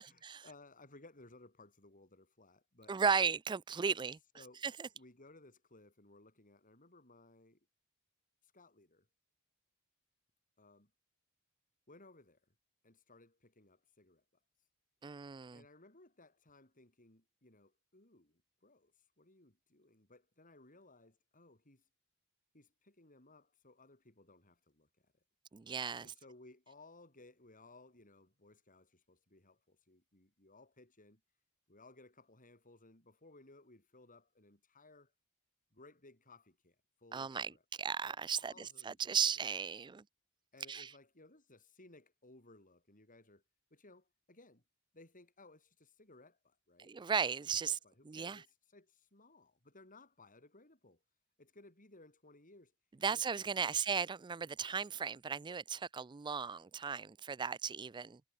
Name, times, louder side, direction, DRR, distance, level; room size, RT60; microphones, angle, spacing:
voice 1, 0.0-3.2 4.4-4.7 4.9-7.7 8.4-9.1 10.6-10.9 11.9-12.4 12.8-14.2 15.5-21.8 22.5-25.1 26.0-31.2 31.7-35.1 35.7-37.6 38.3-39.1 40.5-43.4 43.7-44.6 44.9-46.9 47.6-51.0 51.4-52.7 53.1-53.3 53.5-53.8, left 2 dB, 40° left, 7.4 m, -61 dB
voice 2, 2.9-4.2 4.6-4.9 15.0-15.6 25.5-26.1 37.1-37.5 37.8-40.0 40.7-40.9 46.8-47.8 48.1-48.4 53.0-58.2, right 6 dB, 20° right, 0.4 m, -36 dB
head